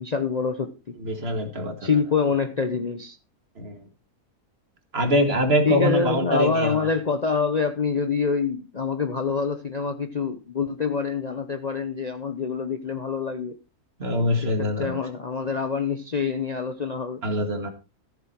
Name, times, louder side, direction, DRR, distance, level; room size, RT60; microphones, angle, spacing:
voice 1, 0.0-1.0 1.8-3.2 5.6-13.6 14.6-17.2, left 5 dB, 35° left, 0.7 m, -26 dB
voice 2, 1.0-1.9 3.6-3.8 4.9-6.9 14.0-15.0 17.2-17.7, equal, 45° right, 2.0 m, -24 dB
14.0 x 7.4 x 4.5 m
omnidirectional pair, 1.5 m